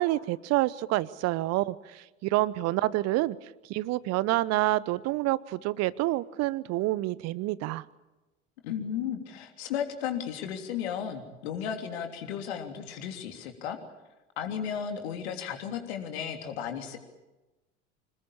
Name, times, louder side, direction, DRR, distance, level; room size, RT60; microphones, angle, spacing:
voice 1, 0.0-3.4 3.7-7.8, right 17 dB, 45° right, 19 dB, 0.9 m, -28 dB
voice 2, 8.6-13.8 14.4-17.0, left 8 dB, 65° left, 5 dB, 3.3 m, -34 dB
26.5 x 20.0 x 8.7 m, 1.1 s
figure-of-eight pair, 65°, 35 cm